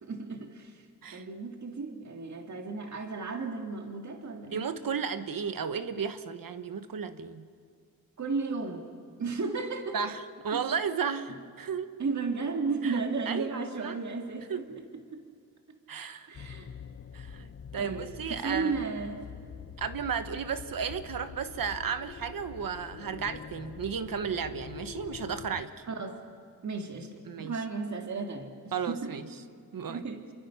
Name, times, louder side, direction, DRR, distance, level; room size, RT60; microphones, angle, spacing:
voice 1, 0.0-0.8 1.1-4.6 8.2-8.8 9.2-10.0 10.5-10.6 12.0-14.9 15.1-15.2 16.3-16.7 17.8-19.2 25.9-26.2 26.6-29.2 29.9-30.2, right 4 dB, 50° right, 4 dB, 1.9 m, -34 dB
voice 2, 4.5-7.5 9.9-11.9 12.8-13.0 13.3-14.0 14.5-14.7 15.9-16.3 17.1-18.7 19.8-25.7 27.3-27.5 28.7-29.2 29.7-30.0, right 6 dB, 70° right, 10 dB, 1.2 m, -34 dB
sound 1, 16.3-25.6, left 7 dB, 40° left, 0.7 m, -45 dB
28.5 x 23.0 x 5.7 m, 2.2 s
wide cardioid pair, 180°, 35 cm